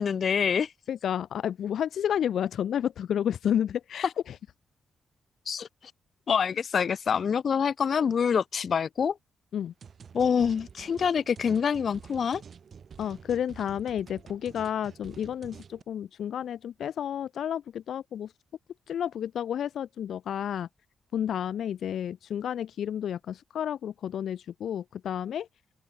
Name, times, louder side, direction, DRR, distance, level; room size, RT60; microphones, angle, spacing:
voice 1, 0.0-0.7 5.5-5.7 6.3-9.1 10.1-12.4, left 7 dB, 55° left, 1.4 m, -26 dB
voice 2, 0.9-4.4 9.5-9.7 13.0-18.3 18.9-20.7 21.1-25.5, left 9 dB, 75° left, 1.1 m, -31 dB
sound 1, 9.8-15.8, right 6 dB, 55° right, 5.7 m, -48 dB
open air
cardioid pair, 95°, 0 cm